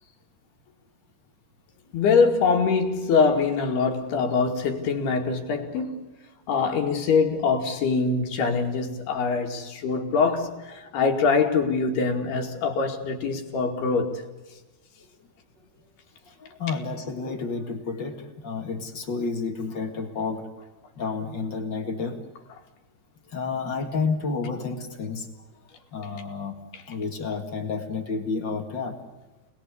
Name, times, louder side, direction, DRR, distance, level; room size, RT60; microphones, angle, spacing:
voice 1, 1.9-6.1 6.5-14.2, left 5 dB, 70° left, 4.2 m, -23 dB
voice 2, 16.4-20.5 21.0-22.2 23.3-25.3 25.9-26.6 26.9-29.0, left 4 dB, 35° left, 1.9 m, -30 dB
28.5 x 20.0 x 8.5 m
omnidirectional pair, 4.8 m